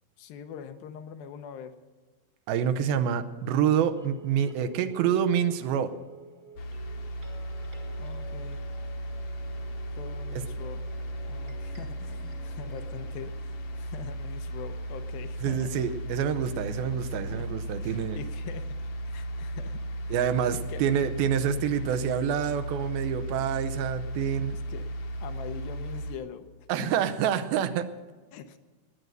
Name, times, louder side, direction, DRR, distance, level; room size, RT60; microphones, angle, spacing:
voice 1, 0.2-1.7 8.0-8.7 9.9-10.9 11.3-15.8 16.7-20.8 21.8-22.1 23.4-23.5 24.5-24.9 25.2-26.5 26.8-27.1 28.3-28.6, left 8 dB, 80° left, 8 dB, 2.6 m, -43 dB
voice 2, 2.5-5.9 10.3-10.4 15.4-18.2 20.1-24.5 26.7-27.9, right 8 dB, 80° right, 10 dB, 2.6 m, -27 dB
sound 1, 3.5-13.8, right 2 dB, 30° right, 1.1 m, -50 dB
sound 2, 6.6-26.1, right 1 dB, 60° left, 1.7 m, -36 dB
19.5 x 9.2 x 6.8 m, 1.3 s
omnidirectional pair, 4.3 m